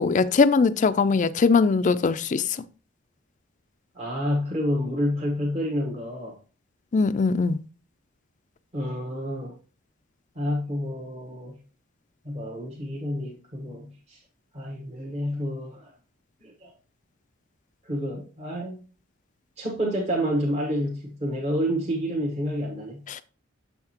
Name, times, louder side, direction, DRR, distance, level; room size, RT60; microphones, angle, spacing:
voice 1, 0.0-2.4 6.9-7.6 23.1-23.2, left 4 dB, 40° left, 0.4 m, -21 dB
voice 2, 3.9-6.4 8.7-9.6 10.3-11.6 12.2-14.2 14.5-15.9 16.4-16.7 17.8-18.8 19.6-23.0, equal, 35° right, 1.1 m, -29 dB
6.9 x 5.8 x 2.9 m
head